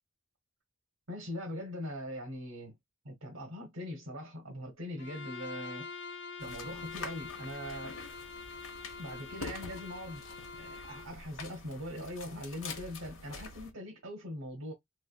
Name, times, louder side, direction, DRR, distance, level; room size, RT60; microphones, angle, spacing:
voice 1, 1.1-2.7 3.0-5.9 6.4-8.0 9.0-10.3 10.6-14.7, equal, 90° right, 1.1 m, -41 dB
Bowed string instrument, 5.0-11.2, left 4 dB, 60° left, 0.9 m, -45 dB
sound 1, 6.4-13.7, left 3 dB, 85° left, 1.0 m, -46 dB
3.3 x 3.1 x 2.3 m
head